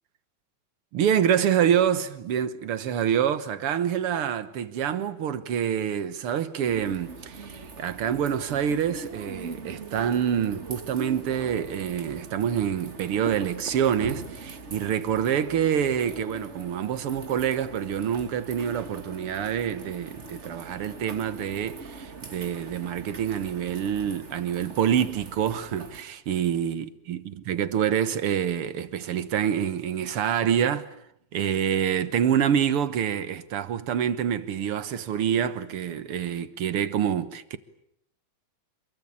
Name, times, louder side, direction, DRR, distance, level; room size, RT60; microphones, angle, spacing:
voice 1, 0.9-27.2 27.5-30.9 31.3-37.6, right 9 dB, 55° right, 1.8 m, -26 dB
sound 1, 6.6-26.0, right 3 dB, 25° right, 1.7 m, -42 dB
28.0 x 22.5 x 8.8 m
omnidirectional pair, 3.5 m